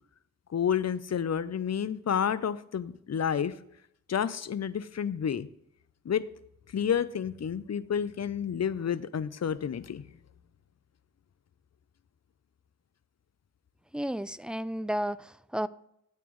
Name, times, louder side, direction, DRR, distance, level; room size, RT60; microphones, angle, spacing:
voice 1, 0.5-3.5 4.1-5.5 6.0-6.2 6.7-10.0, left 8 dB, 50° left, 0.6 m, -30 dB
voice 2, 13.9-15.7, equal, 5° right, 0.3 m, -32 dB
13.0 x 8.3 x 3.1 m
wide cardioid pair, 60°, 33 cm